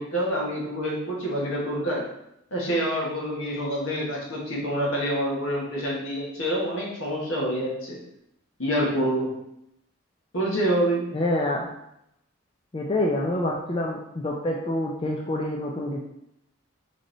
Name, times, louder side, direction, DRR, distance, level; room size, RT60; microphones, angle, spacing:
voice 1, 0.0-2.0 2.5-8.0 8.6-9.3 10.3-11.1, equal, 75° left, -3 dB, 1.5 m, -27 dB
voice 2, 11.1-11.7 12.7-16.0, left 1 dB, 25° left, -1 dB, 0.4 m, -27 dB
3.9 x 3.4 x 3.9 m, 0.79 s
head